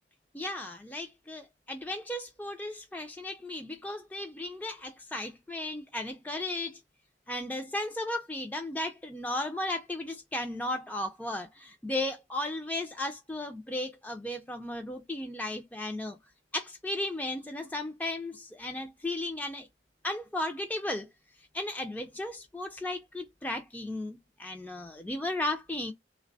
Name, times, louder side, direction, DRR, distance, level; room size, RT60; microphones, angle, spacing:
voice 1, 0.3-6.8 7.3-16.2 16.5-19.7 20.0-21.1 21.4-25.9, left 1 dB, 10° left, 0.4 m, -35 dB
3.2 x 2.1 x 3.9 m
head